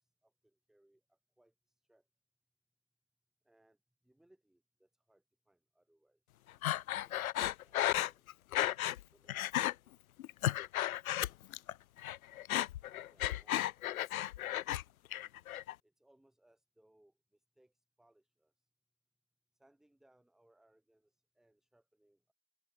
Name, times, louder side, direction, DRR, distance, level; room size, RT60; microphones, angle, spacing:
voice 1, 0.0-2.1 3.4-6.5 7.0-8.2 9.1-10.0 10.5-11.6 12.3-14.9 15.8-18.7 19.5-22.3, right 1 dB, ahead, 2.8 m, -71 dB
Breathing, 6.6-9.0 9.3-9.7 10.2-11.7 12.0-14.8 15.1-15.7, left 13 dB, 75° left, 0.6 m, -34 dB
open air
hypercardioid pair, 165°, 43 cm